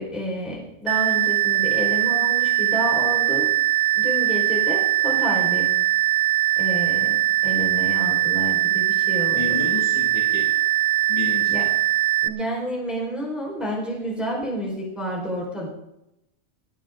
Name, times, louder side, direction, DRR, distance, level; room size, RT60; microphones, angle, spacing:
voice 1, 0.0-3.5 3.9-5.7 6.5-9.6 11.5-11.7 12.2-15.7, equal, ahead, -4 dB, 4.9 m, -29 dB
sound 1, 0.9-12.3, right 15 dB, 75° right, 2.0 m, -21 dB
voice 2, 9.3-10.4 11.1-11.7, left 6 dB, 55° left, -3 dB, 3.4 m, -31 dB
21.0 x 9.3 x 4.0 m, 0.87 s
omnidirectional pair, 4.3 m